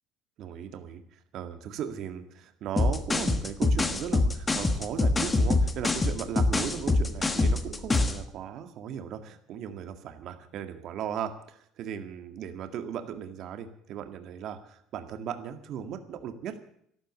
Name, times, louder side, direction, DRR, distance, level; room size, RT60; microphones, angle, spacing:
voice 1, 0.4-16.6, right 8 dB, 55° right, 7 dB, 1.9 m, -37 dB
sound 1, 2.8-8.2, left 2 dB, 15° left, 1.4 m, -24 dB
13.0 x 13.0 x 8.3 m, 0.67 s
cardioid pair, 140°, 0 cm